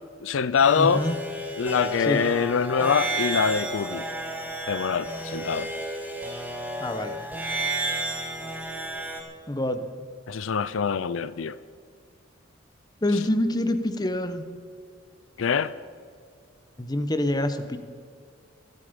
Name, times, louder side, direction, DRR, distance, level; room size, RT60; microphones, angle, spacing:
voice 1, 0.2-1.0 1.6-4.0 4.7-5.7 10.3-11.6 15.4-15.7, left 6 dB, 80° left, 0.5 m, -24 dB
sound 1, 0.5-9.2, right 2 dB, 10° right, 1.8 m, -32 dB
voice 2, 0.8-1.2 2.1-2.2 6.8-7.2 9.5-9.9 13.0-14.5 16.8-17.8, left 1 dB, 20° left, 0.9 m, -26 dB
25.0 x 8.4 x 5.2 m
head